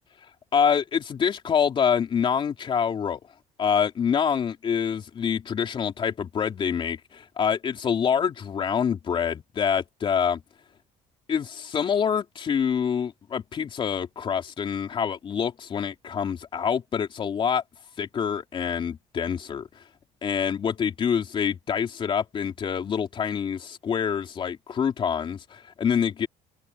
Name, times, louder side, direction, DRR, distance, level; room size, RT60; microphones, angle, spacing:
voice 1, 0.5-3.2 3.6-10.4 11.3-17.6 18.0-19.8 20.2-26.3, left 7 dB, 35° left, 3.1 m, -26 dB
open air
cardioid pair, 140°, 14 cm